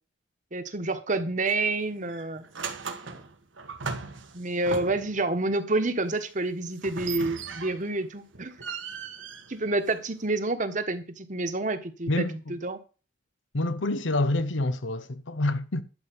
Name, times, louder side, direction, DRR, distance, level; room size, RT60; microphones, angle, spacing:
voice 1, 0.5-2.4 3.1-3.2 4.3-8.5 9.5-12.8, right 2 dB, 40° right, 1.4 m, -28 dB
sound 1, 1.5-1.7 2.1-5.2 6.8-8.0 8.3-10.2, right 5 dB, 90° right, 1.7 m, -38 dB
voice 2, 12.1-12.6 13.5-15.8, left 2 dB, 80° left, 1.0 m, -27 dB
12.0 x 4.9 x 8.6 m
head